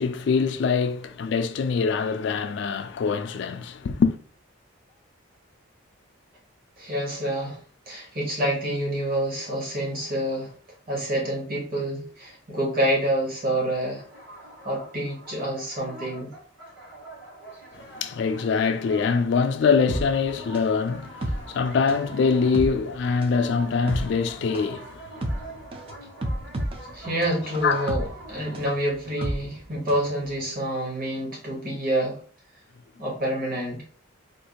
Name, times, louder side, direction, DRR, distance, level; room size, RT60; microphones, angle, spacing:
voice 1, 0.0-4.2 17.7-25.4 27.6-27.9, left 5 dB, 55° left, 0.3 m, -24 dB
voice 2, 6.8-7.6 7.9-10.5 10.9-14.0 14.6-16.3 26.9-32.2 33.0-33.8, right 1 dB, 45° right, 1.2 m, -27 dB
sound 1, 14.0-28.7, right 1 dB, 60° right, 1.6 m, -45 dB
sound 2, 19.9-30.1 30.4-30.5, right 1 dB, 25° right, 0.4 m, -32 dB
3.5 x 2.4 x 2.8 m
head